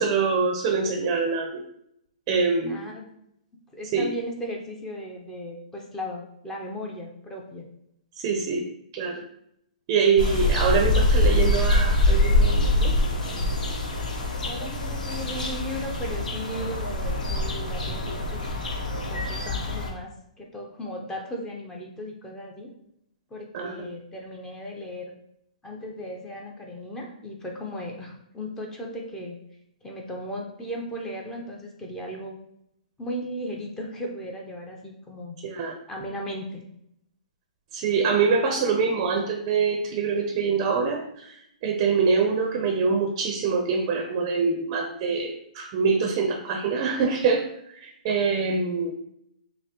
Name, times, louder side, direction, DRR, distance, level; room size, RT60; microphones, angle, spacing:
voice 1, 0.0-1.6 2.3-2.9 3.9-4.1 8.2-8.6 8.9-9.2 9.9-12.9 19.5-19.6 23.5-23.9 35.4-35.7 37.7-41.4 41.6-47.4 47.7-48.9, right 5 dB, 35° right, 4 dB, 0.5 m, -24 dB
voice 2, 2.7-3.1 3.7-7.7 14.5-20.1 20.4-22.7 23.3-25.1 25.6-29.4 29.8-32.4 33.0-35.4 35.9-36.6, equal, 10° left, 0 dB, 0.6 m, -36 dB
sound 1, 10.2-19.9, left 1 dB, 80° left, 0.9 m, -24 dB
5.7 x 2.0 x 2.9 m, 0.74 s
hypercardioid pair, 145°, 4 cm